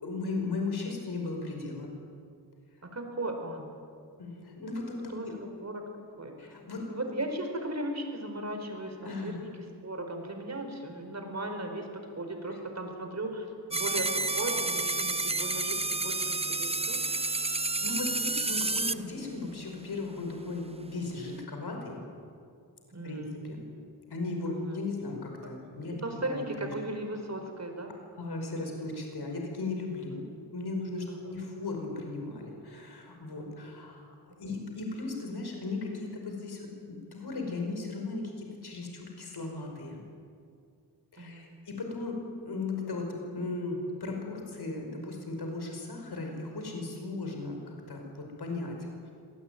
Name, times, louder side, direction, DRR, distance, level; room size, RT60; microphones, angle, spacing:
voice 1, 0.0-2.0 4.2-5.4 6.4-6.9 9.0-9.4 12.5-12.6 17.0-17.4 17.8-22.0 23.0-23.7 24.1-26.7 28.2-30.2 30.5-40.0 41.1-49.1, left 3 dB, 70° left, 2 dB, 5.2 m, -37 dB
voice 2, 2.8-3.7 5.1-5.8 6.2-6.5 6.9-8.9 9.2-9.5 9.8-17.0 22.9-23.4 24.5-24.8 26.0-27.9 31.1-31.2 41.2-41.6, right 1 dB, 40° right, 4 dB, 4.7 m, -37 dB
sound 1, 13.7-18.9, right 3 dB, 15° right, 0.7 m, -30 dB
25.5 x 19.0 x 9.3 m, 2.3 s
wide cardioid pair, 105°, 40 cm